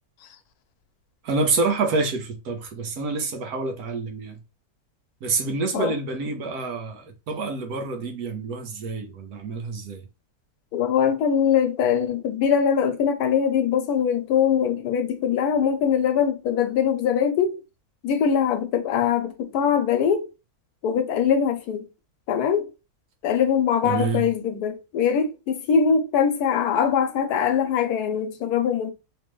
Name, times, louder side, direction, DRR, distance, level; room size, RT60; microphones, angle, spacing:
voice 1, 1.2-4.4 5.2-10.0 23.8-24.3, right 3 dB, 75° right, 1.3 m, -27 dB
voice 2, 10.7-17.6 18.0-20.3 20.8-21.8 22.3-22.7 23.2-28.9, left 7 dB, 90° left, 1.2 m, -22 dB
3.2 x 3.0 x 3.0 m
omnidirectional pair, 1.6 m